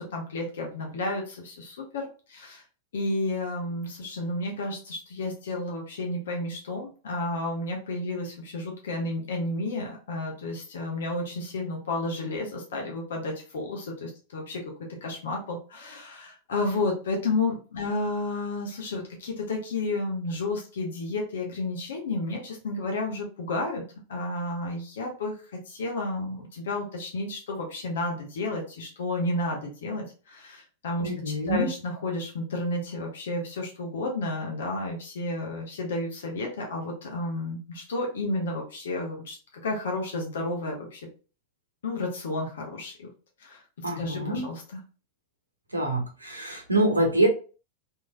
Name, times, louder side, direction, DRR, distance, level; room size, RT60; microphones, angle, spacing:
voice 1, 0.0-2.6 2.9-14.6 15.0-23.8 24.1-25.4 25.7-39.4 39.6-41.1 41.8-43.1 43.4-43.6 44.0-44.6, left 2 dB, 60° left, 0 dB, 0.8 m, -31 dB
voice 2, 31.0-31.7 43.8-44.5 45.7-47.3, right 1 dB, 80° right, 1 dB, 0.8 m, -25 dB
3.1 x 2.7 x 2.2 m, 0.36 s
figure-of-eight pair, 90°, 0 cm